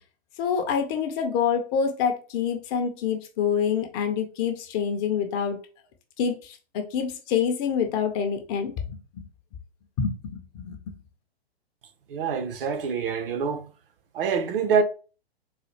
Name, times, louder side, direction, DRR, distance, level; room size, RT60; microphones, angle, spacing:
voice 1, 0.4-5.6 6.2-9.3 10.0-10.8, left 7 dB, 25° left, 0.4 m, -27 dB
voice 2, 12.1-13.7 14.1-14.8, right 6 dB, 60° right, 0.7 m, -25 dB
3.9 x 2.2 x 3.1 m
hypercardioid pair, 125°, 32 cm